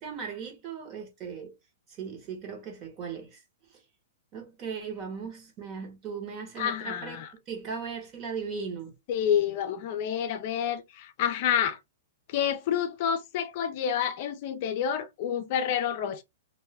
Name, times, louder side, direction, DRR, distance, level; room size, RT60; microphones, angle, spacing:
voice 1, 0.0-1.5 2.0-3.4 4.3-8.9, right 6 dB, 30° right, 1.2 m, -38 dB
voice 2, 6.6-7.3 9.1-11.8 12.3-16.2, left 9 dB, 50° left, 0.5 m, -28 dB
2.6 x 2.1 x 3.3 m
hypercardioid pair, 145°, 0 cm